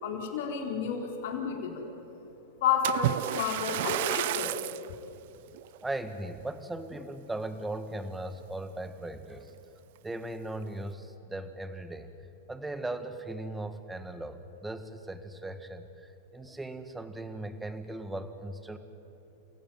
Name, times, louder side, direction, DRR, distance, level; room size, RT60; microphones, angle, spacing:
voice 1, 0.0-1.9 2.6-4.5, left 7 dB, 65° left, 2 dB, 4.1 m, -31 dB
Splash splatter, 2.8-4.9 5.5-5.8 6.4-6.5, right 16 dB, 60° right, 0.4 m, -31 dB
voice 2, 5.8-9.5 10.0-12.1 12.5-18.8, right 2 dB, 10° right, 9 dB, 1.8 m, -38 dB
28.0 x 16.0 x 9.2 m, 3.0 s
hypercardioid pair, 110°, 0 cm